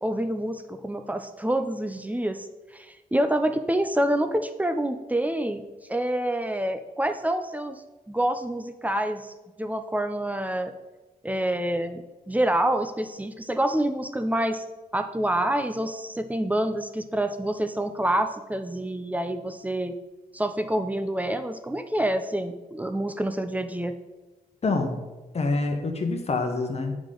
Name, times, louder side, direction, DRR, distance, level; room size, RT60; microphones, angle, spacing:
voice 1, 0.0-2.5 2.7-5.6 5.9-10.7 11.2-14.6 14.9-19.9 20.3-23.9, right 1 dB, 10° right, 8 dB, 0.5 m, -27 dB
voice 2, 24.6-25.0 25.3-26.9, left 3 dB, 45° left, 5 dB, 1.1 m, -26 dB
9.4 x 5.0 x 3.9 m, 1.1 s
wide cardioid pair, 120°, 15 cm